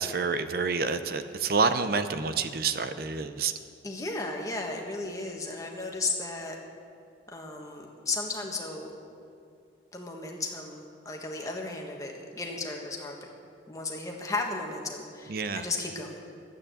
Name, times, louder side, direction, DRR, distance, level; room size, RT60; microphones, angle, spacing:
voice 1, 0.0-3.5 15.3-15.6, right 4 dB, 50° right, 10 dB, 0.5 m, -28 dB
voice 2, 3.8-6.5 7.3-8.9 9.9-13.2 13.7-16.2, left 3 dB, 20° left, 0 dB, 1.4 m, -34 dB
12.5 x 8.9 x 7.7 m, 2.4 s
head